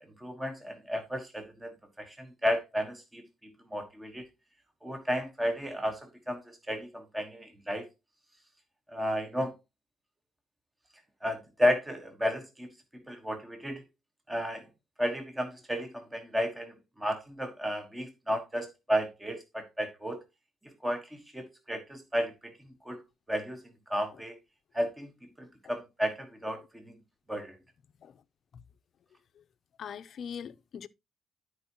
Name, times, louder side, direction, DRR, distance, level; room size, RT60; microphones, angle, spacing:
voice 1, 0.2-1.7 2.0-4.2 4.8-7.9 8.9-9.6 11.2-13.8 14.3-14.6 15.0-20.2 20.8-22.5 22.8-23.0 23.3-23.6 23.9-24.4 24.7-25.1 25.4-26.8 27.3-27.5, equal, 15° right, 1.4 m, -33 dB
voice 2, 29.8-30.9, left 7 dB, 60° left, 0.6 m, -41 dB
13.0 x 4.6 x 3.0 m
cardioid pair, 90°, 0 cm